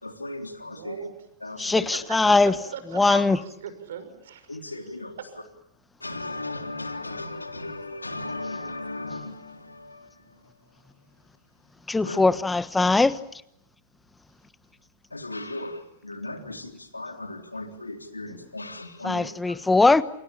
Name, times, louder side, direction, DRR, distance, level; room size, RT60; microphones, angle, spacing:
voice 1, 0.0-1.1 1.4-1.9 3.1-3.2 4.5-5.2 6.0-10.4 12.0-12.2 15.1-19.6, left 2 dB, 90° left, 3.6 m, -36 dB
voice 2, 0.6-1.1 1.9-2.2 2.4-4.5, right 7 dB, 60° right, 6.1 m, -39 dB
voice 3, 1.6-3.4 11.9-13.2 19.0-20.0, left 3 dB, 10° left, 1.2 m, -21 dB
28.5 x 28.0 x 7.2 m
figure-of-eight pair, 105°, 0 cm